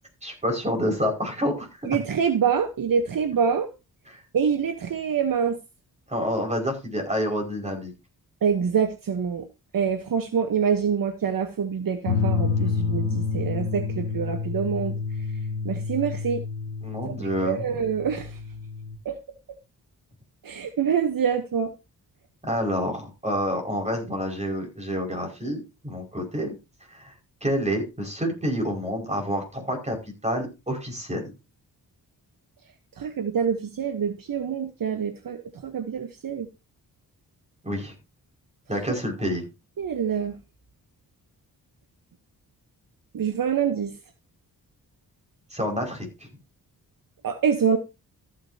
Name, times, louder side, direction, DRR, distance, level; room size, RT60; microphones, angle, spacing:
voice 1, 0.2-2.0 4.1-4.2 6.1-7.9 16.8-17.7 22.4-26.5 26.9-27.1 27.4-30.0 30.2-31.3 37.6-37.9 38.7-39.5 45.5-46.3, equal, 20° right, 2 dB, 5.5 m, -28 dB
voice 2, 1.8-3.7 4.3-5.6 8.4-9.5 9.7-15.0 15.6-16.4 17.0-18.4 19.0-19.2 20.4-21.7 33.0-36.5 39.8-40.3 43.1-43.9 47.2-47.8, right 7 dB, 60° right, 8 dB, 1.1 m, -25 dB
sound 1, 12.1-19.0, left 5 dB, 85° left, 1.1 m, -29 dB
14.0 x 9.6 x 2.8 m, 0.27 s
wide cardioid pair, 100°, 38 cm